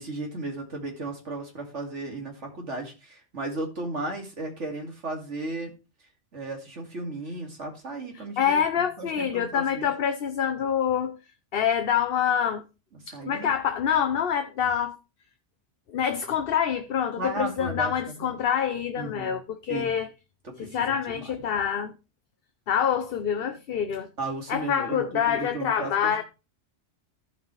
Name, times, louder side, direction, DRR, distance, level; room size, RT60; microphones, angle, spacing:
voice 1, 0.0-5.7 6.3-9.9 13.1-13.5 17.2-17.9 18.2-18.3 19.0-19.3 19.7-19.9 20.4-21.2 24.2-26.2, right 2 dB, 80° right, 2.8 m, -35 dB
voice 2, 8.4-11.2 11.5-12.6 13.1-15.0 15.9-20.1 20.6-21.9 22.7-24.1 24.5-26.2, left 8 dB, 55° left, 0.9 m, -26 dB
15.0 x 5.5 x 3.2 m
omnidirectional pair, 1.2 m